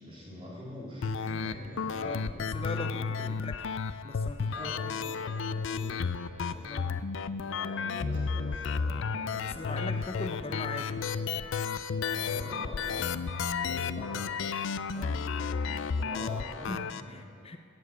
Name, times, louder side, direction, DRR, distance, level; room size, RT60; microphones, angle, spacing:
voice 1, 0.0-3.3 4.5-6.9 7.4-11.4 12.1-14.5 15.3-17.1 17.3-17.6, equal, 25° right, -6 dB, 3.7 m, -46 dB
sound 1, 1.0-17.0, left 5 dB, 60° left, 0.4 m, -33 dB
voice 2, 2.0-3.7 4.0-5.2 6.6-7.0 9.5-11.0 14.9-15.3 16.7-17.6, left 2 dB, 25° left, 6 dB, 0.8 m, -40 dB
15.0 x 7.4 x 8.2 m, 2.1 s
head